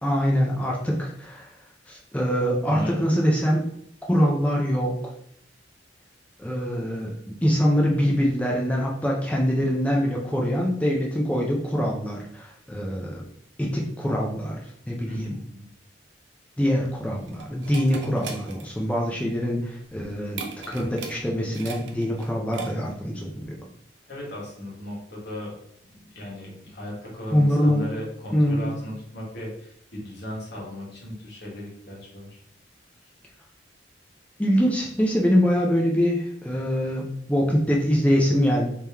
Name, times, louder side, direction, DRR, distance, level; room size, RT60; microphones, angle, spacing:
voice 1, 0.0-1.5 1.9-3.6 4.1-5.0 6.4-13.2 13.6-14.6 14.9-15.3 16.6-23.6 27.3-27.9 28.3-28.7 34.4-38.7, equal, 5° left, -2 dB, 0.5 m, -24 dB
voice 2, 2.7-3.0 15.1-15.7 24.1-25.5 25.8-32.4, left 1 dB, 65° left, -4 dB, 1.4 m, -36 dB
sound 1, 16.6-23.1, right 5 dB, 70° right, 0.6 m, -40 dB
3.5 x 2.9 x 3.4 m, 0.69 s
head